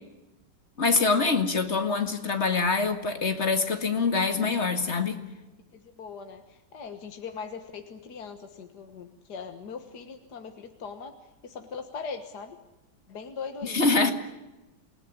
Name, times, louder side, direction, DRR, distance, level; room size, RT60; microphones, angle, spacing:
voice 1, 0.8-5.2 13.6-14.1, left 4 dB, 40° left, 6 dB, 2.3 m, -25 dB
voice 2, 5.7-12.6 13.1-13.8, left 5 dB, 65° left, 6 dB, 2.0 m, -40 dB
27.5 x 18.5 x 9.9 m, 1.0 s
omnidirectional pair, 1.9 m